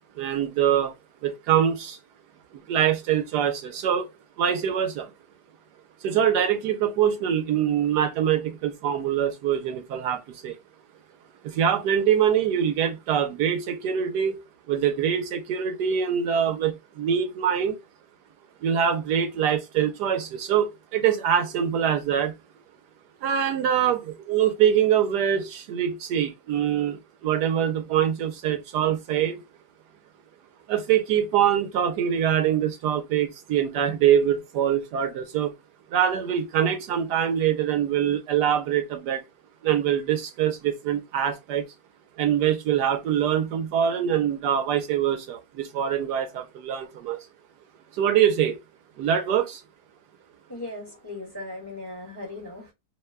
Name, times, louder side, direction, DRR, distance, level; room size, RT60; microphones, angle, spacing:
voice 1, 0.2-0.9 1.2-2.0 2.7-4.1 4.4-5.1 6.0-10.6 11.4-14.4 14.7-17.8 18.6-22.3 23.2-29.4 30.7-35.5 35.9-39.2 39.6-41.7 42.2-47.3 48.0-48.6 49.0-49.6, right 9 dB, 75° right, 1.2 m, -24 dB
voice 2, 50.5-52.7, left 2 dB, 15° left, 1.0 m, -38 dB
3.0 x 2.1 x 3.2 m
omnidirectional pair, 1.8 m